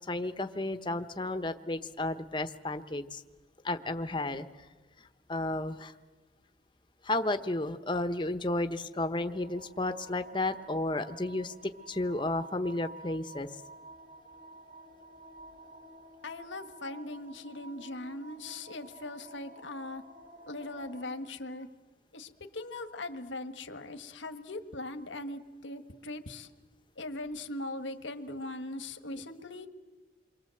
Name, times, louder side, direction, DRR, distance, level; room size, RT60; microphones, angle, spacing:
voice 1, 0.1-3.2 3.6-4.5 5.3-5.9 7.0-13.5, left 2 dB, 25° left, 9 dB, 1.0 m, -32 dB
sound 1, 9.3-21.1, right 2 dB, 55° right, 7.8 m, -51 dB
voice 2, 16.2-20.0 20.5-21.7 22.1-26.5 27.0-29.7, left 2 dB, 85° left, 8 dB, 1.6 m, -40 dB
28.5 x 23.5 x 7.8 m, 1.3 s
head